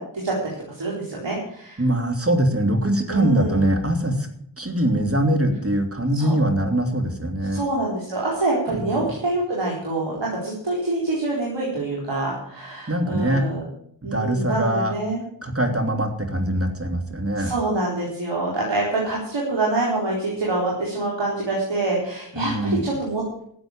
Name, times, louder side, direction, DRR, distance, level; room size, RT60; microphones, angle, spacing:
voice 1, 0.0-1.8 3.1-3.6 6.1-6.4 7.5-13.6 14.0-15.2 17.4-23.4, right 2 dB, 70° right, -4 dB, 4.2 m, -26 dB
voice 2, 1.8-4.3 4.6-7.6 8.7-9.1 12.9-13.4 14.0-14.9 15.4-17.5 22.3-22.9, right 1 dB, 30° right, 5 dB, 2.9 m, -22 dB
13.0 x 7.9 x 8.8 m, 0.68 s
cardioid pair, 40°, 44 cm